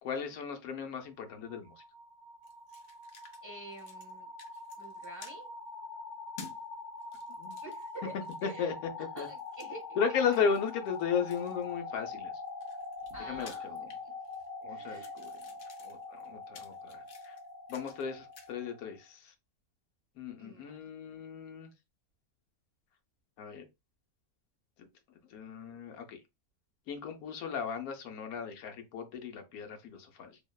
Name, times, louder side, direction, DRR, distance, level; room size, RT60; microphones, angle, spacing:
voice 1, 0.0-1.7 7.4-7.6 8.4-8.7 9.2-9.3 10.0-12.3 13.2-13.9 14.6-15.3 15.8-17.4 17.7-19.3 20.2-21.7 23.4-23.6 25.3-26.2 26.9-30.4, left 6 dB, 80° left, 1.1 m, -35 dB
sound 1, 1.0-18.9, left 3 dB, 35° left, 0.9 m, -44 dB
sound 2, 2.4-3.4 3.7-4.1 4.4-5.4 6.4-6.6 7.0-8.6 9.2-9.7 10.3-11.7 12.3-14.5 14.8-18.1 18.3-18.5, left 5 dB, 65° left, 0.6 m, -53 dB
voice 2, 3.4-4.3 4.8-5.5 7.6-8.1 8.4-8.7 9.1-10.4 13.1-13.8 14.7-15.1 20.4-20.7, right 2 dB, 15° right, 0.8 m, -47 dB
2.9 x 2.0 x 2.2 m
omnidirectional pair, 1.5 m